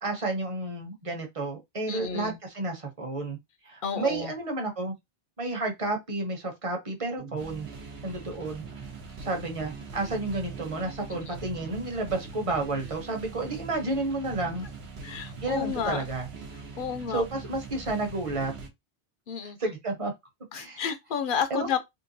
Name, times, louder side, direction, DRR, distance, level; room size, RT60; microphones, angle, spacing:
voice 1, 0.0-3.4 3.6-4.9 5.4-7.7 8.0-8.6 9.2-14.7 15.4-16.3 17.1-18.5 19.4-20.1 20.5-20.8 21.5-21.8, right 2 dB, 35° right, 0.9 m, -31 dB
voice 2, 1.9-2.4 3.8-4.3 11.1-11.3 15.0-16.2 16.8-17.2 19.3-19.6 20.5-21.8, left 7 dB, 60° left, 0.7 m, -31 dB
sound 1, 7.2-18.7, right 4 dB, 80° right, 1.0 m, -42 dB
3.7 x 2.3 x 2.6 m
omnidirectional pair, 1.0 m